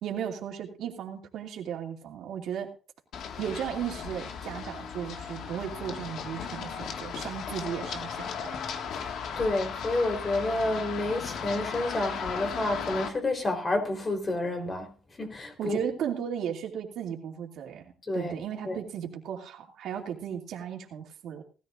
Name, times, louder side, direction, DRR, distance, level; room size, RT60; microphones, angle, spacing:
voice 1, 0.0-2.7 3.4-8.6 15.6-21.4, right 8 dB, 80° right, 2.6 m, -35 dB
Run, 3.1-13.1, left 6 dB, 75° left, 1.8 m, -36 dB
voice 2, 8.9-14.9 15.2-15.8 18.0-18.4 18.7-18.8, left 2 dB, 30° left, 3.9 m, -29 dB
19.0 x 13.5 x 2.6 m
cardioid pair, 90°, 0 cm